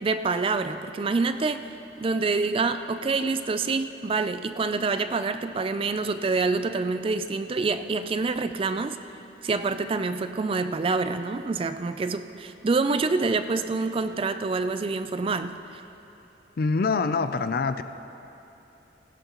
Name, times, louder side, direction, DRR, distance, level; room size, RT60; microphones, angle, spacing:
voice 1, 0.0-1.7 2.0-9.0 9.4-15.8, right 4 dB, 30° right, 10 dB, 0.4 m, -26 dB
voice 2, 16.6-17.8, left 4 dB, 55° left, 11 dB, 0.4 m, -25 dB
17.0 x 15.5 x 3.0 m, 2.9 s
head